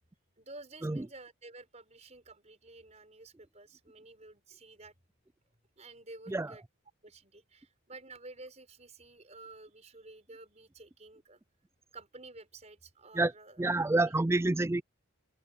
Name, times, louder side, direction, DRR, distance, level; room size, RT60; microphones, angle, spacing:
voice 1, 0.4-4.9 5.8-6.6 7.0-11.4 11.9-14.0, right 2 dB, 30° right, 5.6 m, -51 dB
voice 2, 13.6-14.8, right 2 dB, 10° right, 0.3 m, -28 dB
open air
head